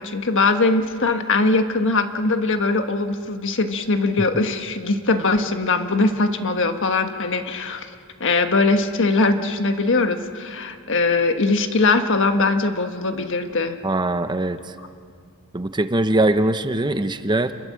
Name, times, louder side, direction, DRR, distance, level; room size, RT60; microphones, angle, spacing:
voice 1, 0.0-7.9 8.2-13.8, left 3 dB, 60° left, 7 dB, 1.5 m, -21 dB
voice 2, 13.8-14.6 15.5-17.5, right 2 dB, 20° right, 9 dB, 0.8 m, -21 dB
28.5 x 22.0 x 7.7 m, 2.3 s
head